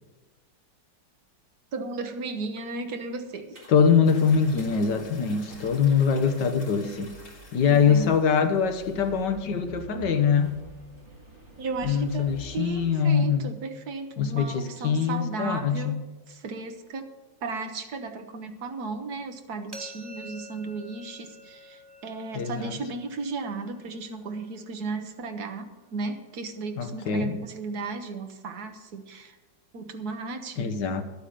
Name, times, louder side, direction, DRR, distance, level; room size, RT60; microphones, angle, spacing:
voice 1, 1.7-3.6 7.7-8.1 11.6-16.0 16.3-17.1 17.4-29.4 29.7-30.8, right 4 dB, 60° right, 6 dB, 1.8 m, -35 dB
sound 1, 3.5-12.6, right 1 dB, 45° right, 4.5 m, -48 dB
voice 2, 3.7-7.1 7.5-10.6 11.8-13.5 14.2-16.0 22.3-22.8 26.8-27.4 30.6-31.0, left 6 dB, 75° left, 7 dB, 1.8 m, -23 dB
sound 2, 4.0-8.9, left 2 dB, 50° left, 3.7 m, -50 dB
sound 3, 19.7-25.5, equal, 20° right, 0.7 m, -48 dB
11.5 x 9.0 x 6.8 m, 1.2 s
omnidirectional pair, 1.9 m